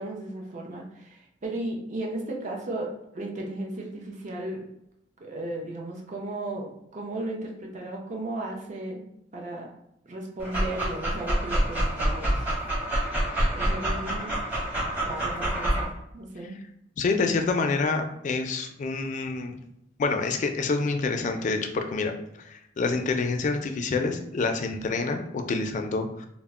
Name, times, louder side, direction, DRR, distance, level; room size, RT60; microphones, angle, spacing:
voice 1, 0.0-4.6 5.2-9.1 9.3-9.7 10.1-12.3 13.5-14.3 15.0-16.6, right 1 dB, 45° right, -1 dB, 0.5 m, -35 dB
Dog, 10.4-15.8, right 1 dB, 10° right, 0.7 m, -27 dB
voice 2, 17.0-19.6 20.0-22.1 22.4-26.3, left 3 dB, 45° left, 5 dB, 0.3 m, -27 dB
2.1 x 2.1 x 3.5 m, 0.79 s
head